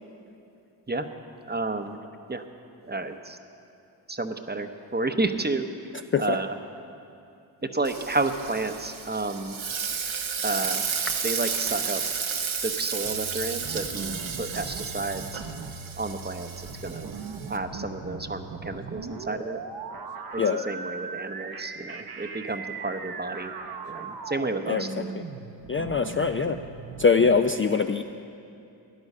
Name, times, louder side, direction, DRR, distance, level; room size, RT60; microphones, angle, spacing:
voice 1, 1.5-2.0 2.3-2.4 2.8-3.4 4.1-5.7 6.2-6.5 7.6-9.6 10.4-10.8 11.2-12.0 12.6-15.4 16.0-17.1 17.5-19.6 20.3-23.5 23.8-25.1, right 3 dB, 20° right, 8 dB, 0.8 m, -31 dB
Frying (food), 7.8-17.6, right 6 dB, 75° right, 1.0 m, -32 dB
sound 1, 13.0-27.4, right 5 dB, 50° right, 0.9 m, -39 dB
voice 2, 25.7-26.6 27.0-28.0, left 5 dB, 30° left, 6 dB, 0.4 m, -22 dB
13.0 x 10.5 x 5.5 m, 2.6 s
cardioid pair, 40°, 47 cm